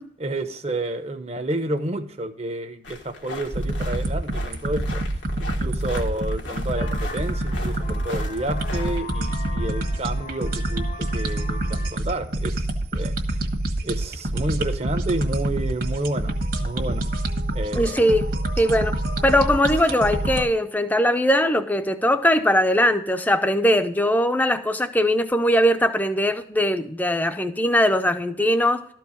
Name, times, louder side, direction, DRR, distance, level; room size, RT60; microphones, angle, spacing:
voice 1, 0.2-5.0 5.4-13.4 13.8-17.1 17.5-18.0, right 1 dB, 35° right, 0.9 m, -30 dB
sound 1, 2.8-9.0, left 2 dB, 85° left, 1.7 m, -39 dB
sound 2, 3.5-20.4, right 1 dB, 50° right, 1.5 m, -26 dB
Vehicle horn car horn honking, 6.8-11.9, left 2 dB, 40° left, 0.7 m, -38 dB
voice 2, 17.7-18.9 19.2-28.9, equal, 10° left, 0.7 m, -20 dB
13.0 x 4.6 x 7.2 m
head